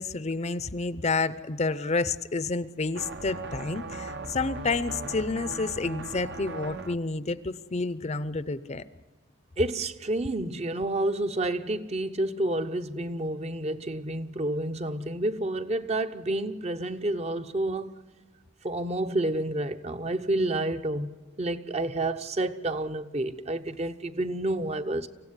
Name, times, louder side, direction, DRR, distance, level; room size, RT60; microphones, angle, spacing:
voice 1, 0.0-8.8, left 3 dB, 35° left, 0.7 m, -29 dB
sound 1, 2.9-7.0, right 3 dB, 60° right, 1.0 m, -38 dB
voice 2, 9.6-18.0 18.6-25.1, right 1 dB, 35° right, 0.9 m, -29 dB
25.0 x 16.0 x 9.7 m
head